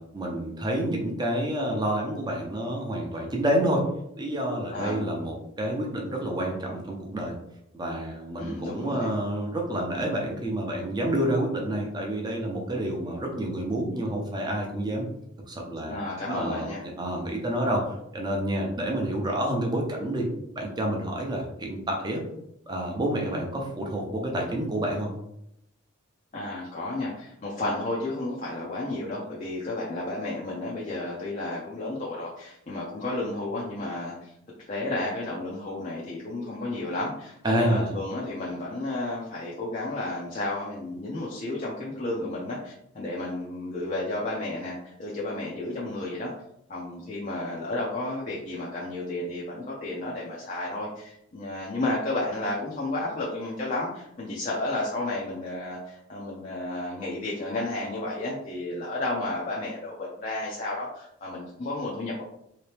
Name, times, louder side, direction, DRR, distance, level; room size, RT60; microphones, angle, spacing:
voice 1, 0.0-3.9 4.2-7.4 7.7-15.0 15.5-16.0 16.3-16.7 17.0-20.3 20.5-22.2 22.7-25.1 37.4-37.9, right 1 dB, 20° right, 0 dB, 0.7 m, -28 dB
voice 2, 4.7-5.0 8.4-9.1 15.9-16.8 26.3-34.3 34.7-46.3 46.7-62.2, left 2 dB, 35° left, -5 dB, 0.6 m, -32 dB
3.3 x 2.9 x 3.3 m, 0.78 s
head